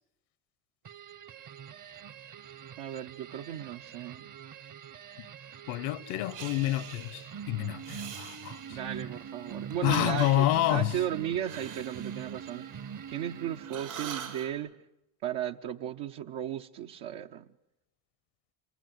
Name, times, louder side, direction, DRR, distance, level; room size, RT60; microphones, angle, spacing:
sound 1, 0.8-14.0, right 7 dB, 40° right, 1.0 m, -44 dB
voice 1, 2.8-4.2 8.7-12.6 13.1-14.7 15.2-17.5, right 11 dB, 70° right, 0.9 m, -35 dB
voice 2, 5.7-8.8 9.8-10.9, left 15 dB, 85° left, 1.1 m, -28 dB
Breathing, 6.3-7.3 7.8-9.0 9.7-13.3 13.6-14.5, right 8 dB, 85° right, 4.8 m, -44 dB
27.0 x 25.0 x 7.9 m
supercardioid pair, 80°, 47 cm